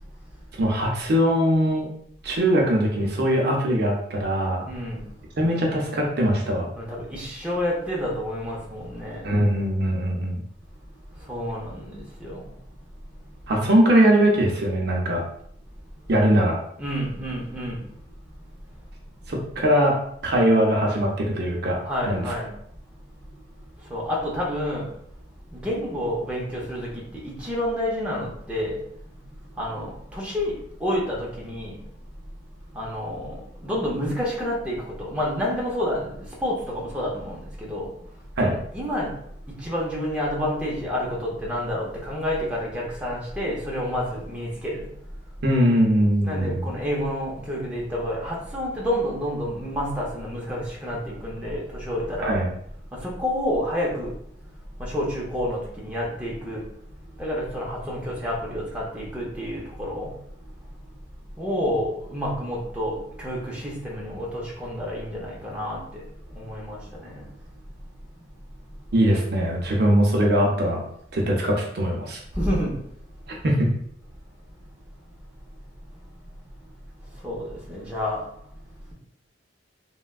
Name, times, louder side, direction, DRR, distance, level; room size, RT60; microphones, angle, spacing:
voice 1, 0.6-1.9 2.2-4.6 5.4-6.7 9.2-10.4 13.5-15.2 16.1-16.6 19.3-20.0 20.2-21.8 22.1-22.2 38.4-38.5 45.4-46.7 52.2-52.5 68.9-70.8 71.1-72.2 73.4-73.7, equal, 55° right, -1 dB, 0.6 m, -21 dB
voice 2, 4.7-5.0 6.7-9.2 11.3-12.4 16.8-17.8 21.8-22.5 23.9-24.8 25.5-28.8 29.6-31.7 32.7-33.3 33.6-36.1 36.4-37.9 38.4-39.1 39.6-44.8 46.2-52.3 53.0-54.1 54.8-56.6 57.2-60.1 61.4-66.0 66.3-67.2 72.4-72.7 77.2-78.2, equal, 5° right, -5 dB, 0.6 m, -29 dB
3.2 x 2.1 x 2.3 m, 0.68 s
head